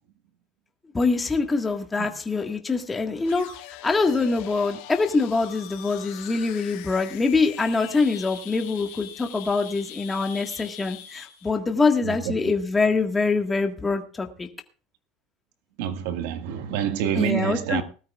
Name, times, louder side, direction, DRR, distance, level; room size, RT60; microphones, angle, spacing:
voice 1, 0.9-3.5 3.8-14.5 17.1-17.8, left 4 dB, 15° left, 1.7 m, -24 dB
sound 1, 3.2-11.5, left 11 dB, 85° left, 2.1 m, -42 dB
voice 2, 12.0-12.4 15.8-17.8, right 9 dB, 80° right, 1.8 m, -27 dB
20.0 x 13.0 x 2.4 m
cardioid pair, 145°, 0 cm